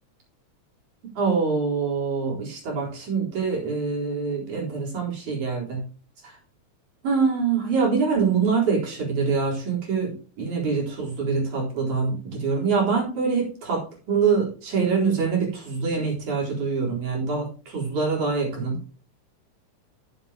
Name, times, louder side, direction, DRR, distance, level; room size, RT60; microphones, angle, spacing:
voice 1, 1.2-5.8 6.2-6.3 7.0-13.8 14.1-18.8, right 5 dB, 80° right, -3 dB, 5.6 m, -25 dB
13.5 x 7.8 x 3.0 m, 0.37 s
omnidirectional pair, 3.4 m